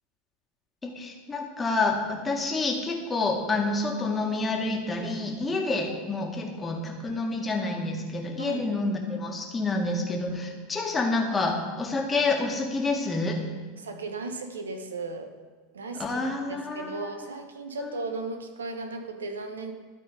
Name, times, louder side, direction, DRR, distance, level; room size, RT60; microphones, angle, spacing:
voice 1, 0.8-13.4 15.9-17.1 17.8-17.9, left 3 dB, 20° left, 1 dB, 1.7 m, -28 dB
voice 2, 13.8-15.3 15.7-16.0 16.3-19.7, right 3 dB, 90° right, 6 dB, 1.0 m, -36 dB
12.5 x 4.2 x 5.3 m, 1.4 s
hypercardioid pair, 95°, 0 cm